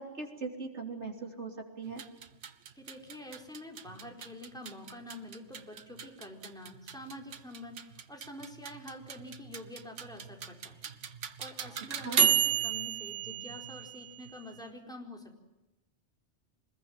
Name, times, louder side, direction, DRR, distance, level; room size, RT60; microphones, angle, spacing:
voice 1, 0.0-2.0 12.0-12.2, right 4 dB, 70° right, 3 dB, 3.6 m, -40 dB
sound 1, 1.9-14.6, right 7 dB, 85° right, 1.4 m, -34 dB
voice 2, 2.8-10.9 11.2-15.4, left 1 dB, 5° left, 1 dB, 4.4 m, -47 dB
25.0 x 21.0 x 9.0 m, 1.1 s
omnidirectional pair, 1.2 m